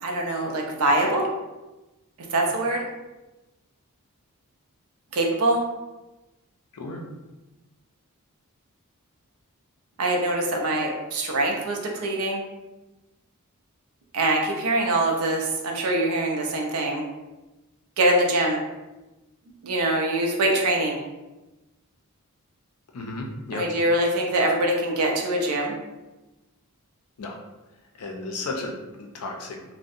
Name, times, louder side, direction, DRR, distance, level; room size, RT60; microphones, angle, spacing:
voice 1, 0.0-1.3 2.3-2.8 5.1-5.6 10.0-12.4 14.1-17.0 18.0-18.6 19.6-21.0 23.5-25.8, right 1 dB, 75° right, 0 dB, 0.5 m, -23 dB
voice 2, 22.9-23.6 27.2-27.4 27.9-29.6, left 2 dB, 85° left, 1 dB, 0.5 m, -34 dB
2.7 x 2.1 x 2.4 m, 1.1 s
head